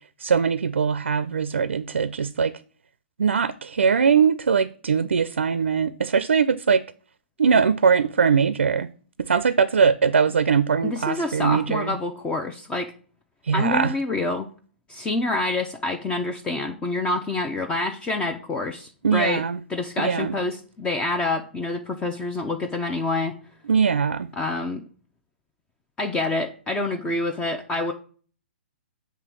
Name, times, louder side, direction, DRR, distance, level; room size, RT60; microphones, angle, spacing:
voice 1, 0.2-2.5 3.2-6.8 7.4-8.9 9.2-11.9 13.4-13.9 19.0-19.6 20.0-20.4 23.7-24.3, right 6 dB, 90° right, 0.5 m, -21 dB
voice 2, 10.8-12.9 13.5-14.5 14.9-19.4 19.7-23.3 24.4-24.8 26.0-27.9, left 2 dB, 15° left, 0.6 m, -27 dB
7.5 x 3.5 x 6.1 m
hypercardioid pair, 135°, 6 cm